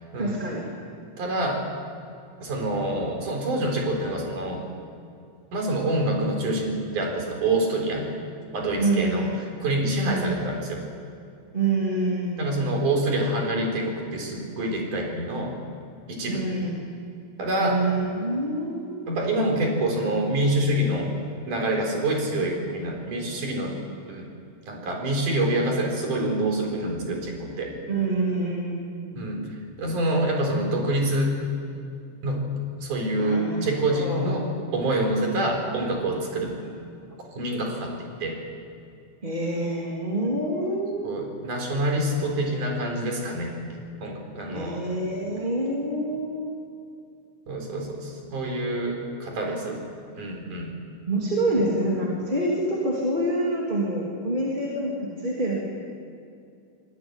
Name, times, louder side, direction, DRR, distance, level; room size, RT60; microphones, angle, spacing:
voice 1, 0.2-0.7 8.8-9.2 10.0-10.3 11.5-12.4 16.3-16.7 17.6-19.1 27.9-29.5 33.2-33.6 33.9-34.3 39.2-41.2 44.4-46.6 49.7-49.8 51.0-55.7, right 2 dB, 15° right, -4 dB, 2.6 m, -27 dB
voice 2, 1.2-1.6 2.4-4.6 5.5-8.1 8.5-9.3 9.6-10.8 12.4-15.6 16.1-16.5 17.4-17.8 19.1-21.1 21.5-23.8 24.1-24.3 24.7-27.7 29.1-29.4 29.8-31.3 32.2-32.4 32.8-36.5 37.4-37.9 38.2-38.4 41.0-43.6 44.0-44.9 47.5-49.8 50.2-50.7, right 1 dB, 45° right, 2 dB, 5.3 m, -26 dB
25.0 x 19.0 x 9.3 m, 2.5 s
omnidirectional pair, 5.3 m